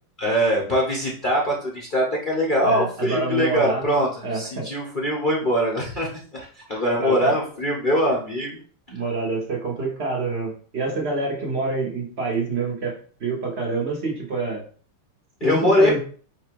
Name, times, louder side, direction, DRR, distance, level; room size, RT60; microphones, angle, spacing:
voice 1, 0.2-6.1 6.5-8.6 15.4-16.0, equal, 60° left, -3 dB, 0.5 m, -22 dB
voice 2, 2.6-3.8 4.2-4.7 6.7-7.3 8.9-14.6 15.4-16.0, right 3 dB, 40° right, -1 dB, 1.0 m, -27 dB
4.4 x 2.4 x 4.6 m, 0.43 s
omnidirectional pair, 2.4 m